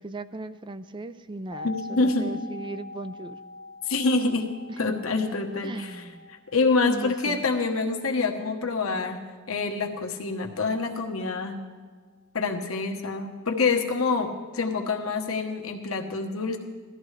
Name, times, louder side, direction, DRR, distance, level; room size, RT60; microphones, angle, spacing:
voice 1, 0.0-3.4 4.9-5.0 5.6-6.2 6.8-7.4, right 2 dB, 25° right, 13 dB, 0.4 m, -38 dB
sound 1, 1.5-11.2 11.5-11.6, left 3 dB, 30° left, 0.6 m, -45 dB
voice 2, 1.6-2.3 3.9-5.9 6.5-11.6 12.3-16.6, left 3 dB, 85° left, 4 dB, 1.2 m, -26 dB
17.0 x 13.5 x 3.3 m, 1.5 s
head